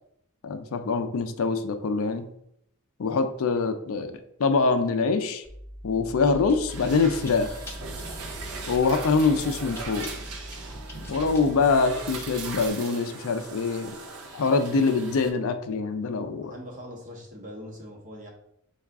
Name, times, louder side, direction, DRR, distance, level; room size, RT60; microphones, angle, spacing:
voice 1, 0.4-2.3 3.0-4.1 4.4-5.4 5.8-7.6 8.7-10.1 11.1-14.0 14.3-16.5, left 4 dB, 65° left, 8 dB, 0.4 m, -24 dB
Chewing mastication, 5.4-12.7, equal, 10° left, 0.7 m, -41 dB
sound 1, 6.7-15.3, right 3 dB, 80° right, 0.6 m, -39 dB
voice 2, 16.3-18.3, equal, 35° right, 0 dB, 0.9 m, -42 dB
5.5 x 2.4 x 3.5 m, 0.73 s
head